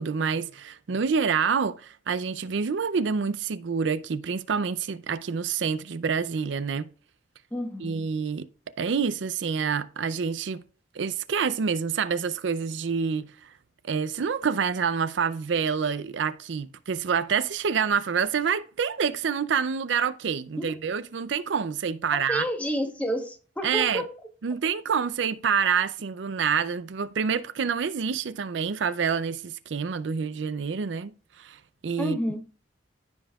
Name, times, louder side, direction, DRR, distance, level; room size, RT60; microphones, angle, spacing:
voice 1, 0.0-6.9 7.8-8.5 8.8-10.6 10.9-13.5 13.8-22.4 23.6-24.1 24.4-32.2, right 6 dB, 70° right, 0.5 m, -27 dB
voice 2, 7.5-8.0 20.6-20.8 22.3-24.1 32.0-32.4, equal, 10° left, 1.2 m, -30 dB
15.0 x 5.4 x 2.4 m
head